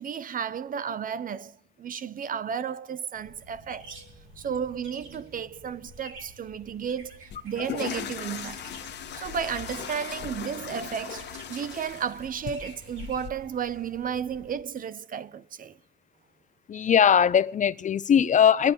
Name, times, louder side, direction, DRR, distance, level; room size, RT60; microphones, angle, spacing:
voice 1, 0.0-4.0 4.4-8.6 9.1-15.8, right 7 dB, 45° right, 0.5 m, -33 dB
sound 1, 3.1-14.6, right 2 dB, 85° right, 2.5 m, -49 dB
sound 2, 7.3-13.3, left 9 dB, 60° left, 0.9 m, -38 dB
voice 2, 16.7-18.7, left 8 dB, 40° left, 0.4 m, -20 dB
26.0 x 10.5 x 2.7 m
cardioid pair, 90°, 20 cm